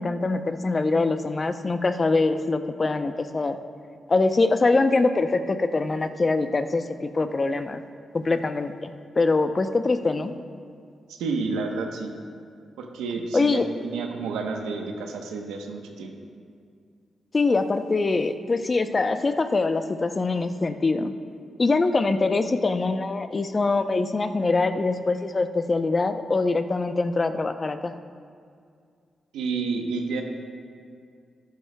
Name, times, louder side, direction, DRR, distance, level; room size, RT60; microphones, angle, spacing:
voice 1, 0.0-3.6 4.1-7.8 8.1-10.3 13.3-13.7 17.3-21.1 21.6-27.9, left 3 dB, 40° left, 9 dB, 0.6 m, -23 dB
voice 2, 11.1-12.1 12.8-16.1 29.3-30.2, right 4 dB, 85° right, 3 dB, 0.9 m, -30 dB
13.5 x 10.5 x 2.2 m, 2.2 s
supercardioid pair, 45°, 0 cm